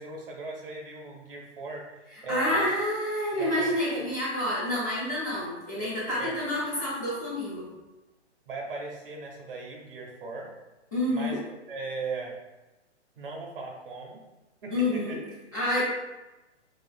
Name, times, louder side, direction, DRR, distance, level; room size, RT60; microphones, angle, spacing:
voice 1, 0.0-2.7 3.4-4.1 6.2-6.4 8.5-10.5 11.1-12.4 13.2-14.2 14.6-15.2, right 3 dB, 50° right, 0 dB, 0.7 m, -38 dB
voice 2, 2.3-7.7 10.9-11.4 14.7-15.2 15.5-15.9, left 1 dB, 15° left, -9 dB, 0.4 m, -28 dB
2.7 x 2.4 x 2.4 m, 1.1 s
hypercardioid pair, 160°, 36 cm